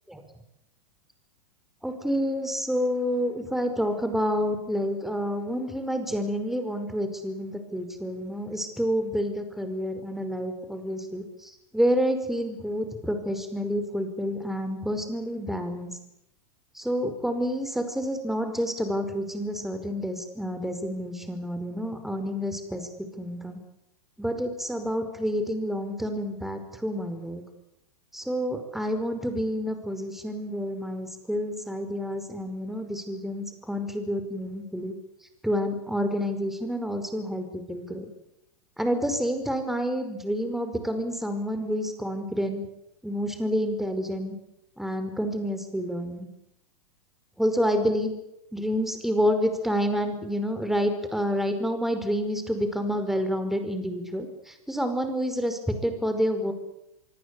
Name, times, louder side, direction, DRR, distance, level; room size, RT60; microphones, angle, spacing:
voice 1, 1.8-15.9 16.7-23.6 24.2-27.4 28.1-35.0 35.4-38.1 38.8-42.6 43.0-44.4 44.8-46.3 47.4-48.1 48.5-56.5, equal, ahead, 7 dB, 5.2 m, -29 dB
25.0 x 24.5 x 8.6 m, 0.83 s
hypercardioid pair, 110°, 19 cm